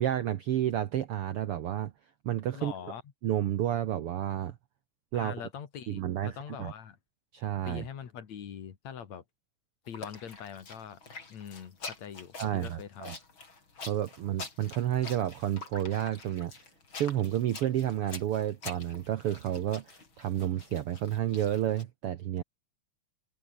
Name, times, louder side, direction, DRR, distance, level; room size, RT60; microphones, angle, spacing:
voice 1, 0.0-1.9 2.2-2.7 3.2-4.6 5.1-5.4 5.9-6.7 7.3-7.8 12.4-13.2 13.9-16.5 16.9-22.4, right 11 dB, 70° right, 1.4 m, -30 dB
voice 2, 2.5-3.0 5.1-7.0 7.6-9.2 9.9-11.0 11.3-13.1, left 8 dB, 60° left, 3.2 m, -43 dB
sound 1, 9.9-21.8, left 4 dB, 35° left, 5.0 m, -46 dB
omnidirectional pair, 3.7 m